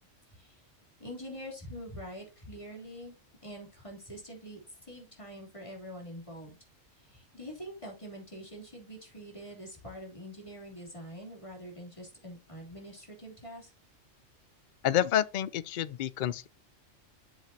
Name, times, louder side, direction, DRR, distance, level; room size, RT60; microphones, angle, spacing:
voice 1, 0.3-0.6 1.0-3.1 3.4-6.6 7.0-13.7, equal, 25° left, 3.2 m, -45 dB
voice 2, 14.8-16.5, left 11 dB, 65° left, 0.4 m, -28 dB
7.8 x 7.3 x 2.8 m
omnidirectional pair, 1.3 m